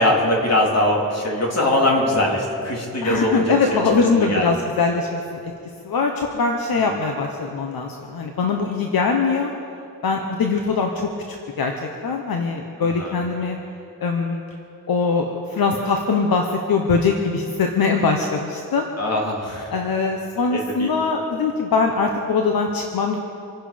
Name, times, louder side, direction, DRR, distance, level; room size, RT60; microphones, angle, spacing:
voice 1, 0.0-3.8 4.2-4.5 6.9-7.0 12.8-13.2 19.0-19.7 20.5-20.9, left 1 dB, 45° left, -2 dB, 3.3 m, -21 dB
voice 2, 3.0-5.4 5.8-9.5 10.0-11.7 12.0-13.6 14.0-14.4 14.9-18.9 19.7-23.2, left 4 dB, 75° left, 3 dB, 1.2 m, -22 dB
26.0 x 10.5 x 5.2 m, 2.6 s
wide cardioid pair, 135°, 36 cm